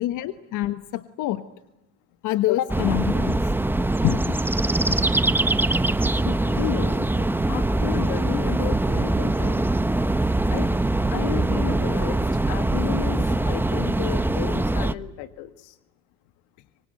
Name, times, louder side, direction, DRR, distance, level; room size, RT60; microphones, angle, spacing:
voice 1, 0.0-1.4 2.2-3.5 4.0-4.4 4.9-5.0 11.6-11.8 13.3-13.4 14.5-14.6, left 14 dB, 60° left, 10 dB, 1.4 m, -26 dB
sound 1, 2.7-14.9, right 2 dB, 5° right, 1.1 m, -23 dB
voice 2, 6.1-7.1 7.5-9.6 10.5-10.7 11.1-13.2 13.5-15.7, left 15 dB, 75° left, 10 dB, 1.7 m, -33 dB
25.0 x 24.5 x 9.1 m, 0.94 s
supercardioid pair, 95°, 34 cm